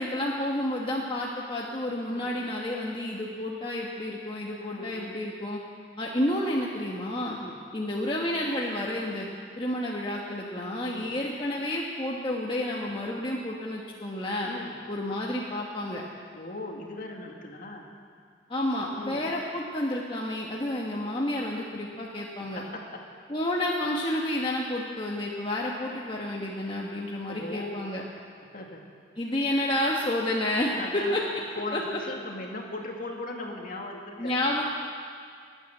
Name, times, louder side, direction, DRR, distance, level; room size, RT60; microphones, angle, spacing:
voice 1, 0.0-5.6 6.0-7.4 7.7-9.3 9.6-14.5 14.9-16.0 18.5-22.6 23.3-28.0 29.2-31.2 31.7-31.8 34.2-34.6, left 1 dB, 25° left, -3 dB, 1.2 m, -30 dB
voice 2, 1.9-2.3 4.6-5.2 7.4-7.6 10.9-11.1 14.4-14.8 16.3-17.9 18.9-19.2 22.4-23.1 27.3-27.9 28.5-28.8 30.8-31.2 31.6-34.4, left 2 dB, 50° left, 1 dB, 2.1 m, -38 dB
20.0 x 9.2 x 7.7 m, 2.2 s
head